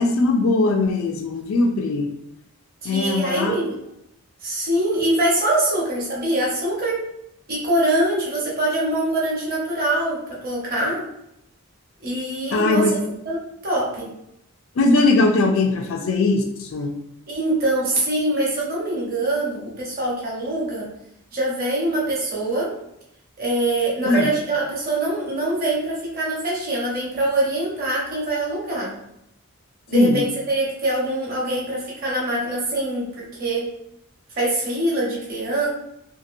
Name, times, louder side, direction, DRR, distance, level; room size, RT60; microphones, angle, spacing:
voice 1, 0.0-2.1 2.8-3.6 12.5-12.9 14.8-16.9 24.1-24.3 29.9-30.2, left 2 dB, 65° left, 3 dB, 0.4 m, -20 dB
voice 2, 2.8-3.8 4.4-7.0 7.5-11.0 12.0-12.9 13.2-13.4 13.6-14.1 17.3-20.9 21.3-22.7 23.4-28.9 29.9-33.7 34.3-35.7, right 1 dB, 45° right, -5 dB, 1.0 m, -24 dB
2.8 x 2.5 x 2.6 m, 0.80 s
head